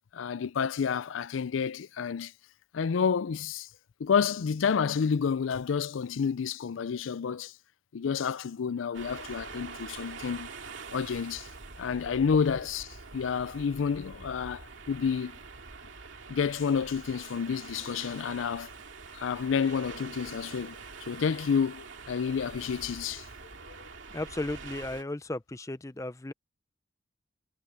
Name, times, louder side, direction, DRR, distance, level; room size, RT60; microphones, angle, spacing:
voice 1, 0.1-2.3 2.7-3.7 4.0-7.5 7.9-10.5 10.9-11.5 11.8-15.3 16.3-18.7 19.1-20.8 21.1-23.2 23.7-23.8, left 6 dB, 85° left, 0.4 m, -29 dB
sound 1, 8.9-25.0, right 4 dB, 80° right, 2.3 m, -45 dB
voice 2, 24.1-26.3, left 2 dB, 15° left, 0.5 m, -35 dB
head